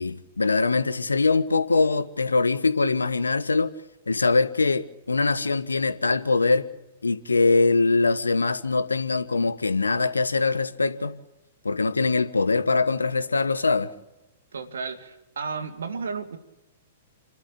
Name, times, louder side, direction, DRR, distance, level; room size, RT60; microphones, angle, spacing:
voice 1, 0.0-3.7 4.1-6.7 7.0-11.2 11.6-13.9, left 3 dB, 80° left, 1.3 m, -23 dB
voice 2, 14.5-16.4, right 5 dB, 70° right, 2.1 m, -33 dB
28.5 x 13.0 x 8.7 m
figure-of-eight pair, 105°, 0 cm